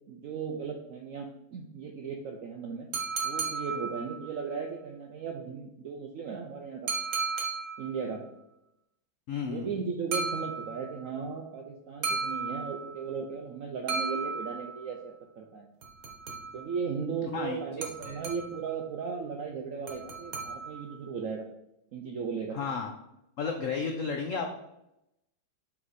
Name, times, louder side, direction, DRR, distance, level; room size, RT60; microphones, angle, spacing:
voice 1, 0.1-2.9 3.2-6.9 7.8-8.2 9.4-15.7 16.5-21.5 21.9-22.6, right 5 dB, 90° right, 2 dB, 0.7 m, -36 dB
sound 1, 2.9-4.4 6.9-8.0 10.1-11.0 12.0-13.1 13.9-14.9 15.8-16.8 17.8-18.7 19.9-21.0, right 4 dB, 55° right, 1.3 m, -35 dB
voice 2, 9.3-9.7 17.3-17.6 18.0-18.2 22.5-22.9 23.4-24.5, left 5 dB, 85° left, 3 dB, 0.7 m, -32 dB
5.8 x 4.8 x 4.0 m, 0.85 s
omnidirectional pair, 2.1 m